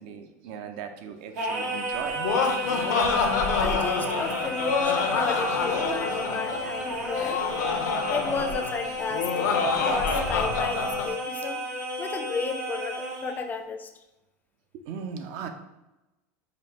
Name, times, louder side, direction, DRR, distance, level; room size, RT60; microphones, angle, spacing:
voice 1, 0.0-2.2 14.7-15.5, right 7 dB, 65° right, 7 dB, 0.5 m, -38 dB
Singing, 1.3-13.4, equal, 85° right, 0.9 m, -32 dB
Laughter, 1.9-11.1, left 5 dB, 80° left, 0.5 m, -27 dB
voice 2, 3.6-7.4 8.1-11.6 12.0-13.9, left 5 dB, 20° left, 7 dB, 0.4 m, -33 dB
5.0 x 2.0 x 2.8 m, 0.98 s
supercardioid pair, 110°, 9 cm